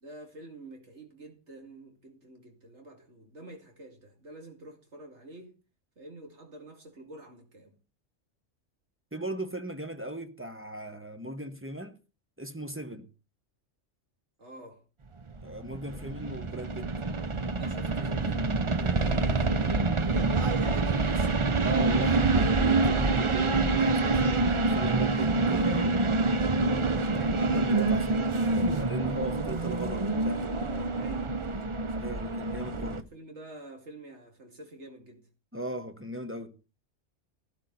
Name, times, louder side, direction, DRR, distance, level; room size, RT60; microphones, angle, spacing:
voice 1, 0.0-5.6 6.0-7.7 14.4-14.8 15.9-16.2 17.5-21.7 31.0-32.1 33.1-35.3, right 1 dB, 70° right, 2.9 m, -48 dB
voice 2, 9.1-11.9 12.4-13.1 15.4-16.9 21.6-26.0 26.7-30.5 32.0-33.1 35.5-36.6, right 1 dB, 10° right, 0.9 m, -38 dB
sound 1, 15.3-33.0, right 3 dB, 30° right, 0.6 m, -26 dB
13.0 x 12.0 x 4.1 m
omnidirectional pair, 1.2 m